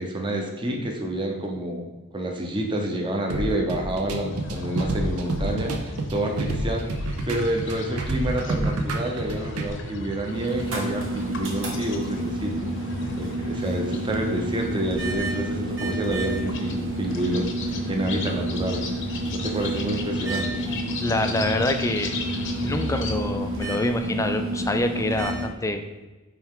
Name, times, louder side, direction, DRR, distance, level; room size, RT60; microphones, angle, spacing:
voice 1, 0.0-6.9 7.3-12.7 13.2-18.8 19.3-20.7, right 1 dB, 20° right, 1 dB, 0.8 m, -28 dB
sound 1, 3.3-9.7, right 2 dB, 85° right, 0.7 m, -29 dB
sound 2, 4.3-23.2, left 2 dB, 55° left, 0.8 m, -35 dB
sound 3, 10.3-25.5, right 1 dB, 60° right, 1.3 m, -30 dB
voice 2, 20.7-22.3 22.5-25.8, left 2 dB, 15° left, 7 dB, 0.4 m, -26 dB
9.0 x 3.3 x 3.7 m, 1.2 s
head